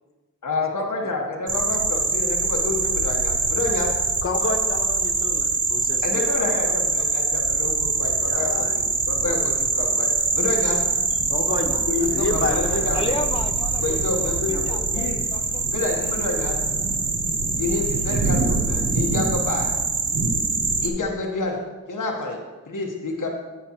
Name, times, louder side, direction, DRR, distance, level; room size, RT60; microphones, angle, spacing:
voice 1, 0.4-4.0 6.0-10.8 11.9-13.1 13.8-15.2 15.7-16.6 17.6-19.7 20.8-21.6 21.9-22.4 22.7-23.3, left 3 dB, 90° left, 0 dB, 1.1 m, -28 dB
sound 1, 1.5-20.9, right 4 dB, 50° right, 0.8 m, -24 dB
voice 2, 4.2-7.1 8.2-8.8 11.3-11.8 12.1-13.1, left 3 dB, 45° left, 3 dB, 1.2 m, -30 dB
voice 3, 12.9-15.7, left 2 dB, 20° left, 6 dB, 0.6 m, -33 dB
14.5 x 5.1 x 2.9 m, 1.2 s
cardioid pair, 45°, 30 cm